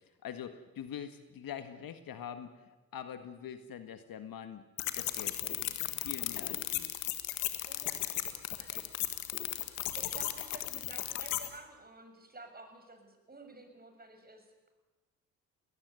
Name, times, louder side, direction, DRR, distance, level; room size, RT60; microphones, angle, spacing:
voice 1, 0.2-4.6 5.0-6.9, left 9 dB, 55° left, 9 dB, 1.8 m, -44 dB
sound 1, 4.8-11.5, left 16 dB, 80° left, 1.7 m, -36 dB
voice 2, 7.6-8.8 9.9-14.7, right 2 dB, 20° right, 6 dB, 6.8 m, -52 dB
21.0 x 20.0 x 9.4 m, 1.2 s
hypercardioid pair, 50°, 43 cm